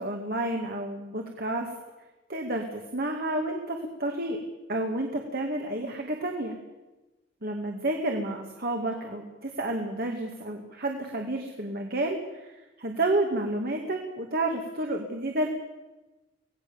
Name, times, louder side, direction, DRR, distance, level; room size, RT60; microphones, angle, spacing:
voice 1, 0.0-1.7 2.3-4.4 4.7-6.6 7.4-15.5, right 1 dB, 50° right, 2 dB, 2.3 m, -30 dB
25.0 x 18.5 x 7.2 m, 1.1 s
head